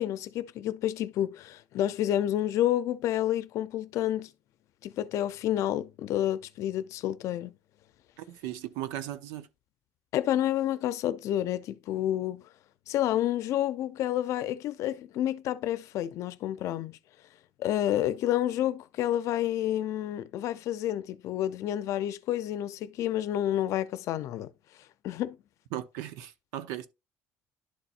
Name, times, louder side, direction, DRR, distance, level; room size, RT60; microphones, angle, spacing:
voice 1, 0.0-4.3 4.8-7.5 10.1-12.4 12.9-17.0 17.6-24.5 25.0-25.4, left 12 dB, 65° left, 0.6 m, -29 dB
voice 2, 8.2-9.5 25.7-26.9, right 13 dB, 85° right, 0.7 m, -37 dB
11.5 x 4.2 x 2.5 m
cardioid pair, 110°, 6 cm